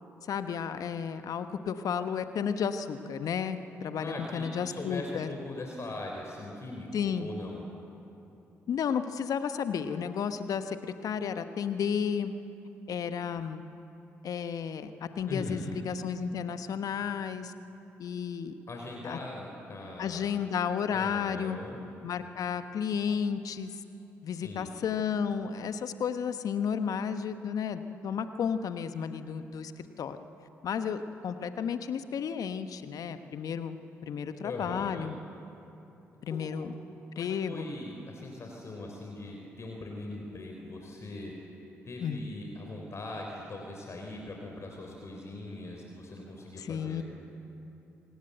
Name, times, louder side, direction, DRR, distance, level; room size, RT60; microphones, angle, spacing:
voice 1, 0.3-5.3 6.9-7.3 8.7-12.3 12.9-13.6 14.2-14.9 15.2-17.5 18.0-18.6 19.0-19.2 20.0-21.6 22.0-23.7 24.2-30.2 30.6-33.8 34.0-35.2 36.2-36.7 37.2-37.7 42.0-42.2 46.6-47.0, left 7 dB, 60° left, 10 dB, 1.2 m, -32 dB
voice 2, 4.0-7.6 15.3-15.8 18.7-20.3 20.9-21.8 24.3-24.7 34.4-35.1 36.3-36.6 37.2-41.3 41.8-47.0, left 2 dB, 40° left, 1 dB, 3.7 m, -41 dB
26.0 x 18.5 x 8.0 m, 2.9 s
hypercardioid pair, 40°, 7 cm